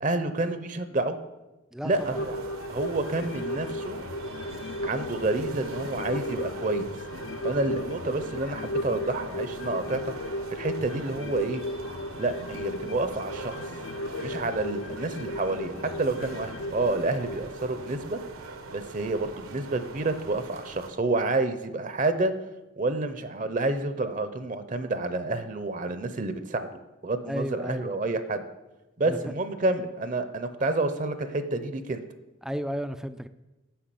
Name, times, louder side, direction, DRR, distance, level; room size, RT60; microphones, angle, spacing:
voice 1, 0.0-1.2 1.8-2.4 2.7-4.0 4.8-6.9 7.4-10.1 10.5-11.6 12.2-13.6 14.2-18.2 18.7-22.3 22.8-26.7 27.0-28.4 29.0-32.0, right 2 dB, 40° right, 10 dB, 0.6 m, -29 dB
voice 2, 1.7-2.2 27.3-27.9 29.1-29.2 32.4-33.3, equal, ahead, 11 dB, 0.3 m, -33 dB
sound 1, 1.9-20.9, right 3 dB, 80° right, 1.1 m, -43 dB
sound 2, 2.1-18.9 19.3-19.4, left 1 dB, 60° left, 0.5 m, -36 dB
10.0 x 5.9 x 7.6 m, 1.1 s
head